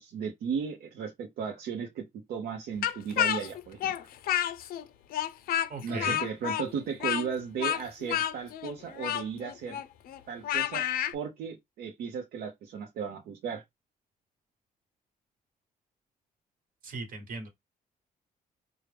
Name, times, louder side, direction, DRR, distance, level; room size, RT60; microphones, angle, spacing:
voice 1, 0.0-3.9 5.8-9.8 10.3-10.9 11.1-13.6, right 6 dB, 85° right, 0.7 m, -35 dB
Speech, 2.8-4.8 5.1-11.1, left 11 dB, 75° left, 0.4 m, -30 dB
voice 2, 5.7-6.2 16.8-17.5, right 3 dB, 65° right, 1.2 m, -38 dB
4.6 x 2.1 x 3.3 m
cardioid pair, 110°, 15 cm